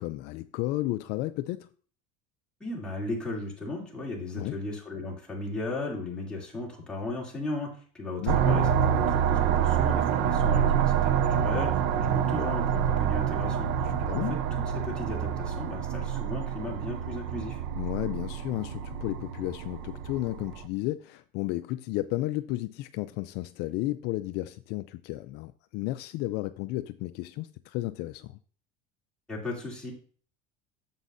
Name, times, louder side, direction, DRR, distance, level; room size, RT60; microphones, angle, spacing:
voice 1, 0.0-1.7 4.4-4.6 8.2-8.6 14.1-14.4 17.8-28.4, left 17 dB, 60° left, 0.4 m, -33 dB
voice 2, 2.6-17.6 29.3-29.9, left 2 dB, 5° left, 2.8 m, -36 dB
sound 1, 8.3-20.6, right 8 dB, 70° right, 0.7 m, -27 dB
9.5 x 7.2 x 2.6 m
cardioid pair, 130°, 19 cm